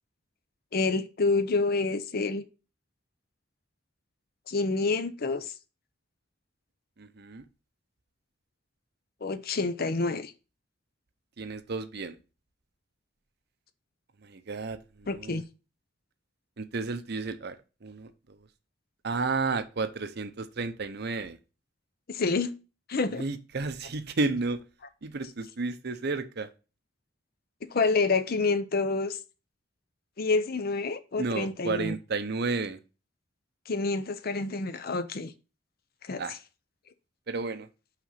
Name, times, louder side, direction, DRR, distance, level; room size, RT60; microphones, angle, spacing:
voice 1, 0.7-2.4 4.5-5.5 9.2-10.3 15.1-15.4 22.1-22.5 22.9-23.2 27.7-29.2 30.2-31.9 33.7-35.3 36.0-36.4, left 3 dB, 50° left, 0.7 m, -28 dB
voice 2, 7.0-7.5 11.4-12.2 14.2-15.4 16.6-17.6 17.8-18.4 19.0-21.4 23.1-24.6 25.0-26.5 31.2-32.8 36.2-36.4 37.3-37.7, right 3 dB, 60° right, 0.7 m, -32 dB
6.0 x 4.9 x 5.7 m
head